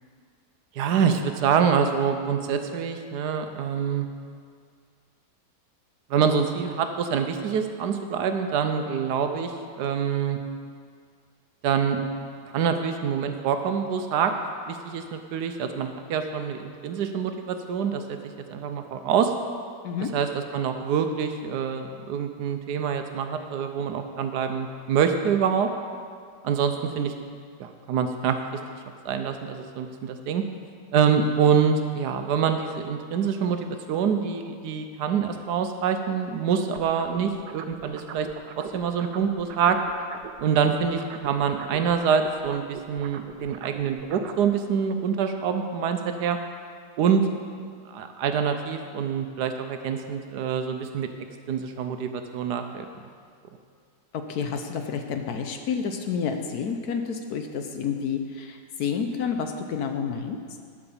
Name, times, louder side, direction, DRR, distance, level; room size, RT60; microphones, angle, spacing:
voice 1, 0.7-4.1 6.1-10.4 11.6-12.0 12.5-14.3 14.7-18.2 18.5-19.3 20.1-25.7 26.4-27.1 27.6-28.4 29.0-30.4 30.9-38.3 38.6-39.8 40.4-46.4 47.0-47.3 47.9-51.1 51.5-52.9, right 7 dB, 70° right, 7 dB, 1.2 m, -25 dB
sound 1, 36.7-40.4 40.7-44.4, right 8 dB, 90° right, 1.3 m, -41 dB
voice 2, 54.1-60.4, left 6 dB, 70° left, 5 dB, 1.1 m, -29 dB
12.0 x 4.9 x 7.0 m, 2.1 s
omnidirectional pair, 1.9 m